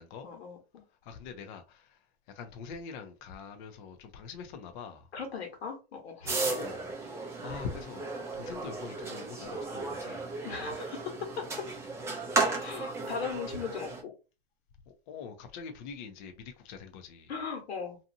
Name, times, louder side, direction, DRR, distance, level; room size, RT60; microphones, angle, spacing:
voice 1, 0.2-0.8 5.1-6.4 10.4-11.7 12.4-14.1 17.3-18.0, left 6 dB, 80° left, 1.3 m, -38 dB
voice 2, 0.9-5.1 6.4-8.1 8.3-10.3 14.9-17.3, left 5 dB, 50° left, 0.7 m, -44 dB
sound 1, 6.3-14.0, right 3 dB, 10° right, 0.4 m, -34 dB
2.7 x 2.4 x 2.6 m
hypercardioid pair, 125°, 31 cm